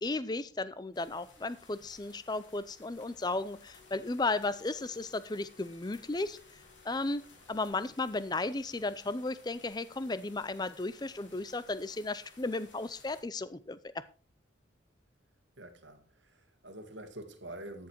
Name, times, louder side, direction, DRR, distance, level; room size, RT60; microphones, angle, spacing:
voice 1, 0.0-6.4 6.8-14.0, left 2 dB, 20° left, 0.5 m, -35 dB
sound 1, 0.9-13.2, left 3 dB, 75° left, 2.9 m, -59 dB
sound 2, 3.7-7.6, left 5 dB, 40° left, 2.6 m, -63 dB
voice 2, 15.6-17.9, right 1 dB, 75° right, 1.8 m, -46 dB
13.5 x 7.2 x 4.5 m
head